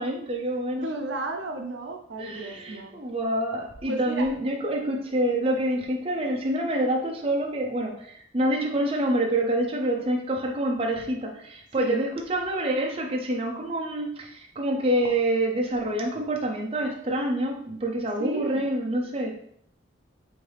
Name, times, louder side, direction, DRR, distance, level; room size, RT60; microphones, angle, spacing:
voice 1, 0.0-0.9 2.2-19.3, right 1 dB, 30° right, 0 dB, 0.6 m, -27 dB
voice 2, 0.8-3.0 3.9-4.3 11.8-12.0 18.2-18.6, right 2 dB, 75° right, 4 dB, 0.5 m, -33 dB
4.5 x 2.7 x 3.3 m, 0.65 s
head